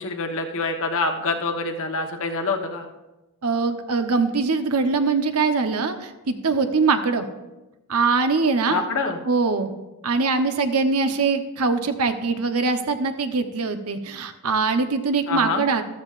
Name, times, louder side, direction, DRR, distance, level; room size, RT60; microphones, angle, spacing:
voice 1, 0.0-2.9 8.7-9.2 15.3-15.6, left 3 dB, 65° left, 4 dB, 1.1 m, -26 dB
voice 2, 3.4-7.3 7.9-8.8 9.3-9.7 10.0-15.8, right 4 dB, 80° right, 8 dB, 0.9 m, -22 dB
14.0 x 12.5 x 2.5 m, 1.0 s
head